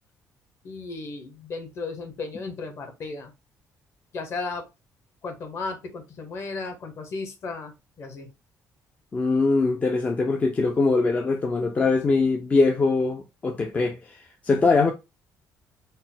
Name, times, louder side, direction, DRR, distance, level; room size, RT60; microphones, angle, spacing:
voice 1, 0.6-3.3 4.1-4.7 5.2-8.3, left 3 dB, 45° left, 1.0 m, -35 dB
voice 2, 9.1-14.9, left 3 dB, 20° left, 0.4 m, -22 dB
4.1 x 2.1 x 3.8 m
cardioid pair, 165°, 6 cm